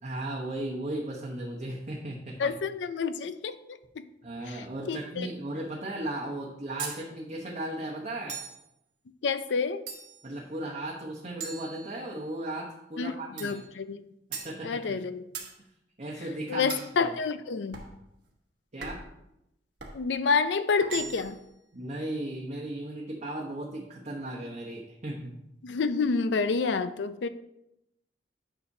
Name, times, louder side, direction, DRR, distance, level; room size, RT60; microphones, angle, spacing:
voice 1, 0.0-2.5 4.2-8.4 10.2-13.6 14.3-15.0 16.0-17.1 18.7-19.0 21.7-25.3, right 1 dB, 40° right, -3 dB, 1.0 m, -36 dB
voice 2, 2.4-4.0 4.5-5.3 9.2-9.8 13.0-13.1 13.4-14.0 14.6-15.2 16.5-17.8 19.9-21.4 25.6-27.3, left 5 dB, 75° left, 12 dB, 0.4 m, -28 dB
sound 1, 6.8-7.0 8.3-8.6 9.9-10.3 11.4-12.3 13.4-13.7 14.3-14.6 15.3-15.6 16.7-16.9 17.7-18.0 18.8-19.1 19.8-20.0 20.8-21.4, right 6 dB, 70° right, 1.2 m, -39 dB
9.8 x 5.9 x 2.7 m, 0.85 s
head